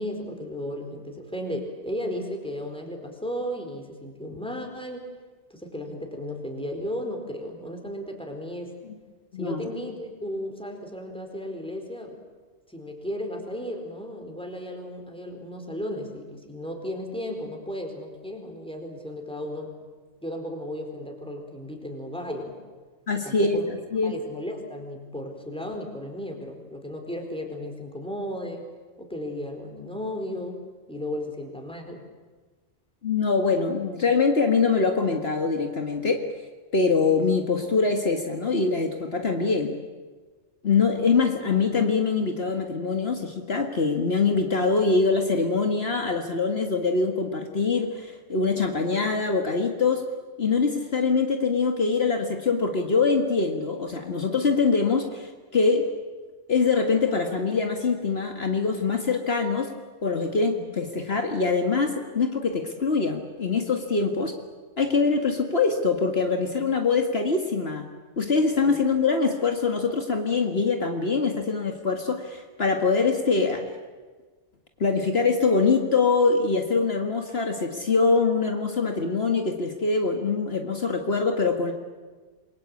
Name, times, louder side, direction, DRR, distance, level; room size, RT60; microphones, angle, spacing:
voice 1, 0.0-5.1 5.5-8.7 9.4-12.2 12.7-19.7 20.2-22.6 23.2-23.7 24.0-28.7 29.0-30.6 30.9-32.0 60.5-60.6 68.6-68.8, left 1 dB, 5° left, 3 dB, 4.3 m, -34 dB
voice 2, 23.1-24.2 33.0-36.2 36.7-39.8 40.6-50.0 50.4-55.9 56.5-59.7 60.0-64.3 64.8-67.8 68.2-73.6 74.8-81.7, left 4 dB, 60° left, 4 dB, 2.0 m, -24 dB
27.5 x 23.0 x 8.6 m, 1.4 s
omnidirectional pair, 1.2 m